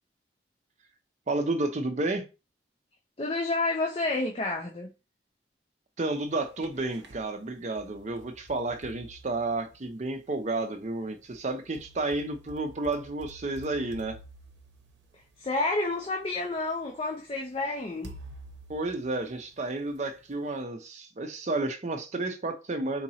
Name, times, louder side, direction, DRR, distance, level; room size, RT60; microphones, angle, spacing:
voice 1, 1.3-2.2 6.0-14.2 18.7-23.0, right 2 dB, 40° right, 0.5 m, -31 dB
voice 2, 3.2-4.9 15.4-18.1, left 2 dB, 30° left, 0.5 m, -29 dB
sound 1, 6.3-7.3 7.8-10.2 11.3-15.8 16.6-16.7 18.0-19.9, right 2 dB, 80° right, 0.7 m, -50 dB
3.8 x 2.9 x 2.7 m
head